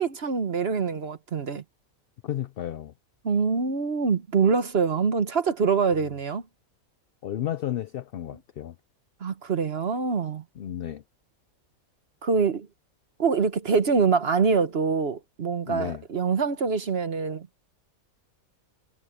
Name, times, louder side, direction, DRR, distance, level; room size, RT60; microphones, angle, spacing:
voice 1, 0.0-1.6 3.2-6.4 9.2-10.4 12.2-12.7 13.2-17.6, right 5 dB, 45° right, 1.2 m, -25 dB
voice 2, 2.2-2.9 7.2-8.7 10.6-11.0 15.7-16.0, left 11 dB, 65° left, 0.6 m, -32 dB
omnidirectional pair, 1.5 m